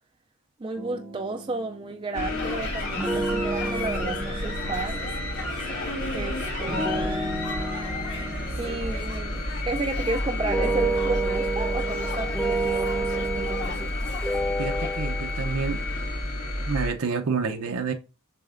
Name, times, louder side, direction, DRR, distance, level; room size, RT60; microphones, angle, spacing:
voice 1, 0.6-5.0 6.1-7.3 8.6-13.9, right 3 dB, 20° right, 0.3 m, -32 dB
sound 1, 0.8-2.6 2.9-5.4 6.6-10.0 10.4-13.9 14.2-15.5, right 2 dB, ahead, 0.7 m, -31 dB
sound 2, 2.1-16.9, left 1 dB, 80° left, 2.3 m, -31 dB
sound 3, 2.4-15.0, left 2 dB, 50° left, 1.6 m, -40 dB
voice 2, 14.6-15.8 16.7-17.9, right 5 dB, 85° right, 0.6 m, -28 dB
6.9 x 5.8 x 2.5 m
head